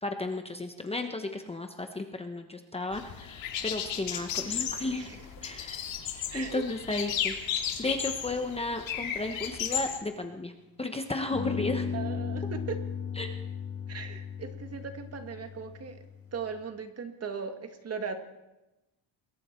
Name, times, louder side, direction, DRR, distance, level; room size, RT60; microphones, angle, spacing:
voice 1, 0.0-5.8 6.3-10.5 10.8-11.9 13.2-13.3, left 2 dB, 15° left, 5 dB, 1.0 m, -34 dB
sound 1, 2.9-10.0, left 9 dB, 85° left, 3.0 m, -34 dB
voice 2, 4.9-5.3 6.3-6.6 11.9-12.8 13.9-16.0 16.3-18.2, right 6 dB, 35° right, 7 dB, 1.8 m, -38 dB
sound 2, 9.6-10.8 11.3-16.5, left 6 dB, 30° left, 1.9 m, -37 dB
27.5 x 21.5 x 4.5 m, 1.0 s
cardioid pair, 175°, 44 cm